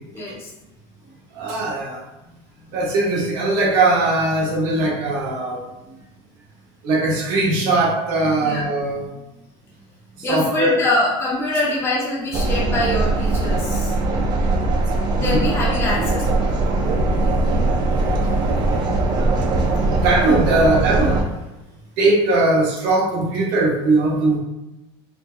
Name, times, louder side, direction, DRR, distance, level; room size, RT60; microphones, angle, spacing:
voice 1, 0.1-0.5 2.2-2.3 2.6-2.8 8.4-8.6 10.2-13.9 15.2-17.0, left 1 dB, 20° left, -5 dB, 0.8 m, -24 dB
voice 2, 1.3-2.0 2.7-5.6 6.8-9.1 10.2-10.8 15.1-15.4 17.3-21.3 22.0-24.4, right 2 dB, 65° right, -3 dB, 1.2 m, -20 dB
sound 1, 12.3-21.2, right 2 dB, 35° right, 0.5 m, -20 dB
4.3 x 2.8 x 2.2 m, 0.97 s
cardioid pair, 155°, 13 cm